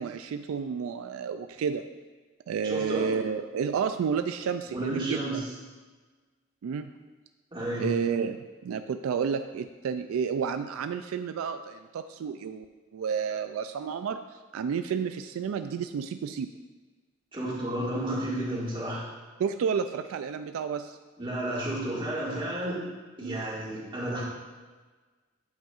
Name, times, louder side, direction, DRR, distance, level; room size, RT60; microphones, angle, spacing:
voice 1, 0.0-1.9 2.5-5.2 6.6-6.9 7.8-12.6 12.9-16.5 19.4-21.0 23.2-23.4, right 6 dB, 85° right, 9 dB, 0.3 m, -31 dB
voice 2, 2.6-3.1 4.6-5.4 7.5-7.9 17.3-19.0 21.2-22.8 23.2-24.2, right 1 dB, 25° right, -6 dB, 2.0 m, -31 dB
8.8 x 8.0 x 2.5 m, 1.4 s
head